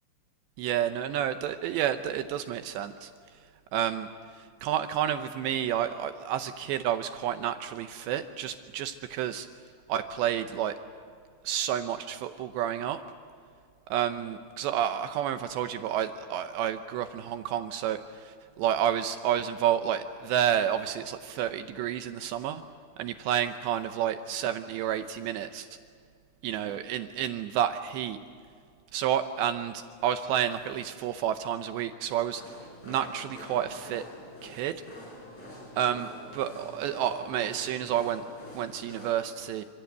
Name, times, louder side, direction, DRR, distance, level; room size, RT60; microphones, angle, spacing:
voice 1, 0.6-3.1 3.7-9.5 9.9-10.8 11.4-13.0 13.9-22.6 23.0-25.7 26.4-28.2 28.9-32.4 32.8-34.1 34.4-34.8 35.8-38.2 38.5-39.7, right 10 dB, 75° right, 8 dB, 2.8 m, -30 dB
sound 1, 32.4-39.1, equal, 35° left, 8.7 m, -46 dB
27.0 x 27.0 x 8.1 m, 2.1 s
omnidirectional pair, 5.4 m